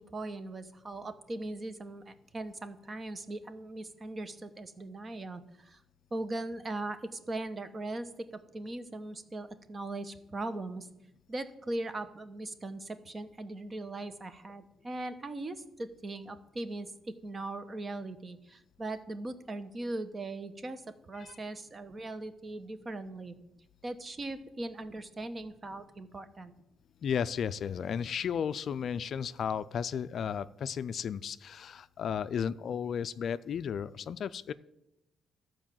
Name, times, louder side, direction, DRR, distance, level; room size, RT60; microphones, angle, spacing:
voice 1, 0.0-5.8 6.1-10.9 11.3-20.8 21.1-23.3 23.8-26.5, right 2 dB, 30° right, 11 dB, 0.9 m, -39 dB
voice 2, 27.0-34.5, left 7 dB, 60° left, 15 dB, 0.3 m, -34 dB
12.5 x 4.7 x 7.4 m, 0.87 s
cardioid pair, 90°, 0 cm